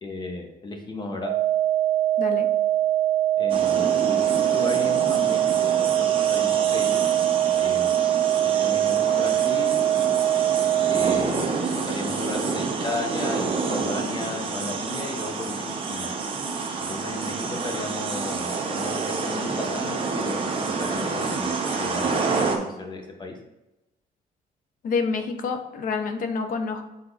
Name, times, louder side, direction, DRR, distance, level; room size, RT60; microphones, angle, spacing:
voice 1, 0.0-1.3 3.4-7.1 7.6-8.0 8.6-9.8 10.9-16.1 16.9-23.3, left 2 dB, 25° left, 3 dB, 1.2 m, -35 dB
sound 1, 1.2-11.2, right 12 dB, 55° right, 0.4 m, -22 dB
voice 2, 2.2-2.5 24.8-26.8, left 5 dB, 55° left, 7 dB, 0.9 m, -27 dB
sound 2, 3.5-22.6, right 4 dB, 35° right, 1.1 m, -28 dB
7.9 x 3.8 x 4.0 m, 0.98 s
cardioid pair, 150°, 16 cm